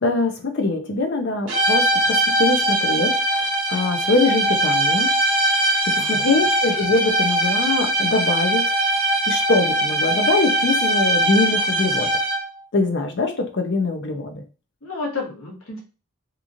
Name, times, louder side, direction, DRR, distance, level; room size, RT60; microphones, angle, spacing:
voice 1, 0.0-5.1 5.9-8.6 9.3-12.1 12.7-14.4, left 3 dB, 50° left, 6 dB, 0.5 m, -23 dB
sound 1, 1.5-12.6, right 1 dB, 70° right, 0.9 m, -21 dB
voice 2, 6.0-6.4 14.8-15.8, left 3 dB, 70° left, -1 dB, 1.1 m, -31 dB
2.9 x 2.5 x 2.5 m, 0.33 s
head